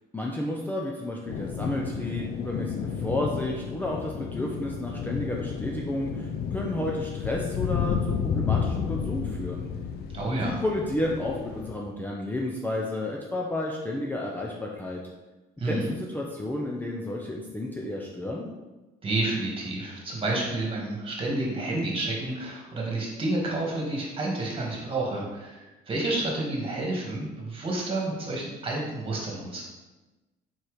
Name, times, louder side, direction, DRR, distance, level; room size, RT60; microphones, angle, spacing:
voice 1, 0.1-9.7 10.3-15.0 15.6-18.5, left 1 dB, 10° left, -2 dB, 0.7 m, -31 dB
sound 1, 1.3-11.7, left 7 dB, 70° left, 0.6 m, -31 dB
voice 2, 10.1-10.6 15.6-15.9 19.0-29.6, right 2 dB, 30° right, -2 dB, 1.9 m, -30 dB
4.6 x 4.3 x 5.0 m, 1.1 s
cardioid pair, 110°, 17 cm